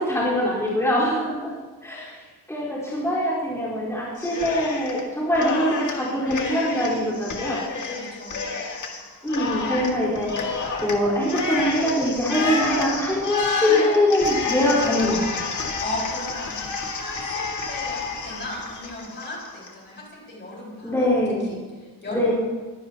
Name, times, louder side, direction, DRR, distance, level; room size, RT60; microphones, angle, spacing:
voice 1, 0.0-1.5 1.8-2.1 2.5-7.6 9.2-15.5 20.8-21.6 22.1-22.3, left 1 dB, 5° left, -9 dB, 4.3 m, -23 dB
Cheering, 4.2-5.0 5.3-19.7, left 4 dB, 50° left, 2.1 m, -30 dB
voice 2, 7.8-8.5 15.8-21.0 21.4-22.3, left 1 dB, 30° left, -3 dB, 4.8 m, -36 dB
23.0 x 16.0 x 2.9 m, 1.4 s
wide cardioid pair, 165°, 39 cm